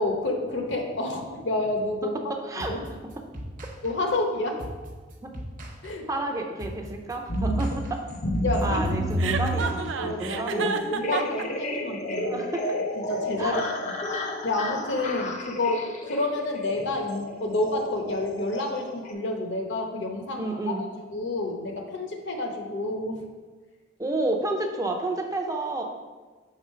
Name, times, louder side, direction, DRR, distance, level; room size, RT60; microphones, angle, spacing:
voice 1, 0.0-2.2 2.5-2.8 3.8-4.6 5.8-6.1 8.4-8.8 9.9-12.4 13.0-13.9 14.4-20.5 20.8-23.2, left 2 dB, 65° left, 3 dB, 0.8 m, -29 dB
voice 2, 2.3-3.1 5.2-5.3 6.1-8.0 8.6-10.8 12.2-12.8 13.4-13.7 20.4-20.9 24.0-25.8, right 2 dB, 15° right, 3 dB, 0.4 m, -30 dB
sound 1, 2.6-10.4, equal, 45° right, 0.8 m, -40 dB
sound 2, 7.3-19.1, equal, 35° left, 0.5 m, -31 dB
Chuckle chortle, 9.2-11.4, right 6 dB, 75° right, 0.4 m, -30 dB
5.0 x 3.8 x 5.5 m, 1.3 s
head